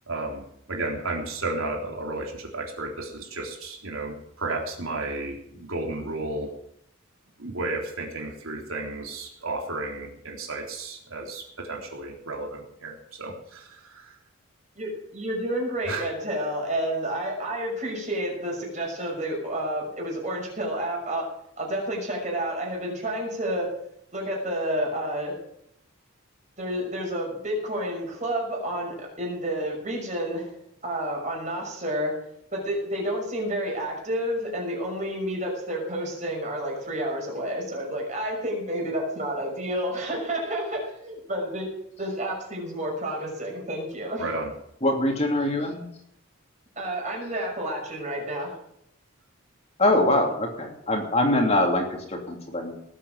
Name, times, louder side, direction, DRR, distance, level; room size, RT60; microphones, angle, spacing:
voice 1, 0.1-0.4 0.7-6.5 7.4-14.1 15.9-16.1 44.2-44.5, right 2 dB, 80° right, 0 dB, 3.7 m, -33 dB
voice 2, 14.8-21.3 21.6-23.7 24.1-25.4 26.6-30.5 30.8-32.2 32.5-41.7 42.0-44.3 46.8-48.5, right 1 dB, 35° right, -1 dB, 6.1 m, -30 dB
voice 3, 44.8-45.8 49.8-52.8, left 1 dB, 30° left, 2 dB, 2.9 m, -23 dB
19.0 x 8.5 x 7.4 m, 0.72 s
head